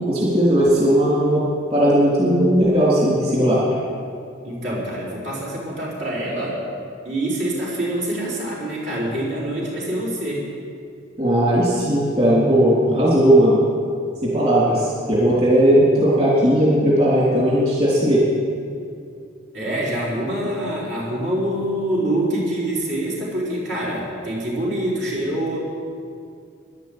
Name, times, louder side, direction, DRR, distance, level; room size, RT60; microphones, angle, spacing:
voice 1, 0.1-1.4 1.7-3.6 11.2-13.6 14.2-18.2, equal, 30° right, -7 dB, 3.6 m, -17 dB
voice 2, 4.4-6.7 7.0-10.5 19.5-25.6, right 1 dB, 65° right, -6 dB, 5.2 m, -25 dB
12.5 x 11.0 x 8.9 m, 2.3 s
head